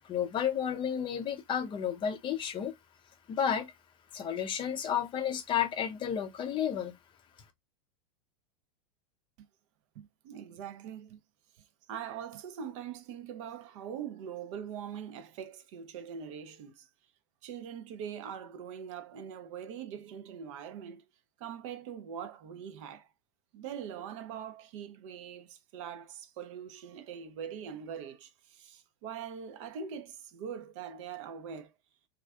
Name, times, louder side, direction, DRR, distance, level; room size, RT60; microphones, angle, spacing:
voice 1, 0.0-2.7 3.3-3.7 4.1-6.9, left 8 dB, 25° left, 0.5 m, -32 dB
voice 2, 9.9-11.2 11.6-11.7 11.9-16.9 17.4-21.0 21.4-23.1 23.5-31.7, right 8 dB, 50° right, 0.5 m, -42 dB
3.2 x 2.4 x 2.3 m
hypercardioid pair, 95°, 20 cm